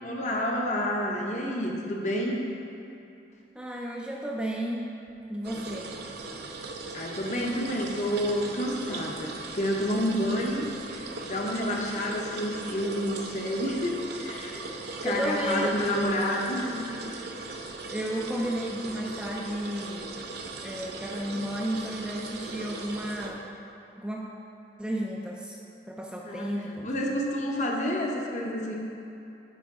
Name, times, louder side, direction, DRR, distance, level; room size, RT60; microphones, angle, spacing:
voice 1, 0.0-2.4 6.9-14.6 15.0-16.8 26.2-28.7, equal, 40° left, -1 dB, 0.8 m, -29 dB
voice 2, 3.5-4.9 5.3-5.9 14.5-14.7 15.0-15.8 17.9-20.1 20.6-23.5 24.0-24.3 24.8-25.6 25.9-26.9, equal, 5° right, -2 dB, 0.4 m, -33 dB
sound 1, 5.4-23.3, right 3 dB, 65° right, 0.6 m, -39 dB
9.1 x 5.0 x 3.7 m, 2.8 s
head